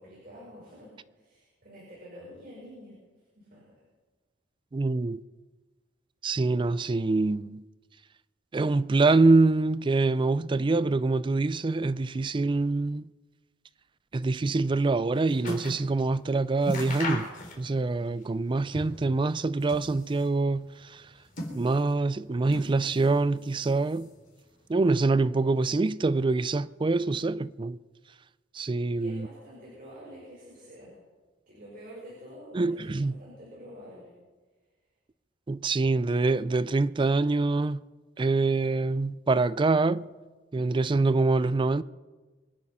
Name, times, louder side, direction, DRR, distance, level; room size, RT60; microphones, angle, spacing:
voice 1, 0.0-3.0 3.3-3.6 28.8-31.0 31.5-34.1, equal, 50° right, 5.3 m, -48 dB
voice 2, 4.7-5.2 6.2-7.6 8.5-13.1 14.1-17.3 17.6-21.0 21.5-24.1 24.7-27.8 28.5-29.3 32.5-33.2 35.5-37.8 38.2-40.1 40.5-41.8, right 3 dB, 25° right, 0.4 m, -25 dB
sound 1, 14.7-15.9 16.2-16.3 16.6-17.9 18.2-19.1 19.5-20.4 21.0-22.0 22.5-23.2 23.5-24.2 24.9-25.0, left 1 dB, 45° left, 3.6 m, -38 dB
24.0 x 9.8 x 5.6 m
head